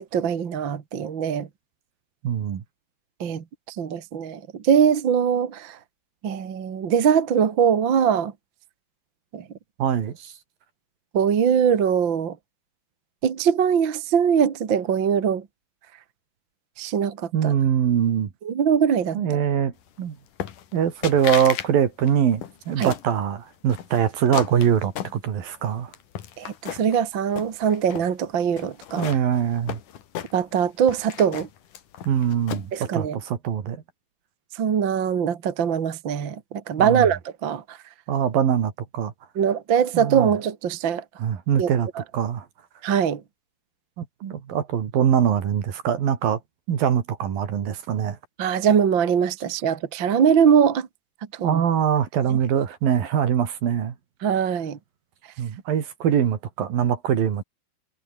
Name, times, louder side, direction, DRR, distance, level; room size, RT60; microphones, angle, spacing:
voice 1, 0.0-1.5 3.2-5.8 6.2-8.3 9.3-9.4 11.1-12.3 13.2-15.4 16.8-17.5 18.4-19.2 22.8-22.9 26.4-29.1 30.3-31.5 32.7-33.2 34.6-37.8 39.3-41.0 41.6-41.7 41.9-42.0 42.8-43.2 48.4-50.9 51.4-51.6 52.3-52.4 54.2-54.8, right 7 dB, 45° right, 1.7 m, -22 dB
voice 2, 2.2-2.6 9.8-10.3 17.3-18.3 19.1-20.2 20.7-25.9 29.0-29.8 32.1-33.8 36.8-37.1 38.1-39.1 39.9-40.3 41.2-41.9 42.1-42.5 44.0-46.4 46.7-48.2 51.4-54.0 55.4-57.4, right 8 dB, 60° right, 4.0 m, -23 dB
sound 1, 20.4-20.8 21.0-21.7 22.0-23.1 23.7-25.6 25.9-27.0 27.3-28.1 28.6-30.6 30.9-32.8, left 10 dB, 55° left, 3.1 m, -34 dB
omnidirectional pair, 4.7 m